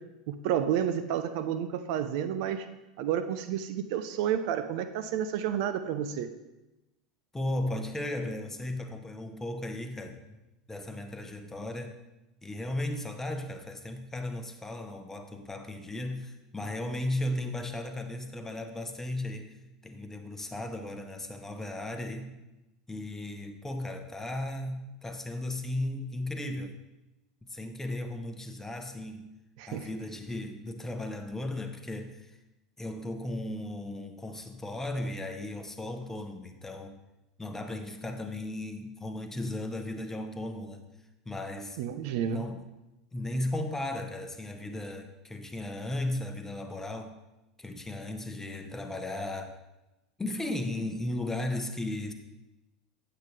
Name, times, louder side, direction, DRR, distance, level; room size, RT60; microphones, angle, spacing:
voice 1, 0.3-2.7 3.0-6.3 29.6-29.9 41.8-42.4, right 9 dB, 60° right, 10 dB, 0.6 m, -30 dB
voice 2, 7.3-10.4 10.7-12.0 12.4-19.5 19.8-22.4 22.9-26.8 27.5-29.3 29.7-32.4 32.8-37.0 37.4-40.8 41.2-41.8 42.3-42.7 43.1-47.2 47.6-49.6 50.2-52.1, left 1 dB, 10° left, 5 dB, 1.0 m, -36 dB
9.0 x 7.8 x 3.3 m, 1.0 s
hypercardioid pair, 90°, 4 cm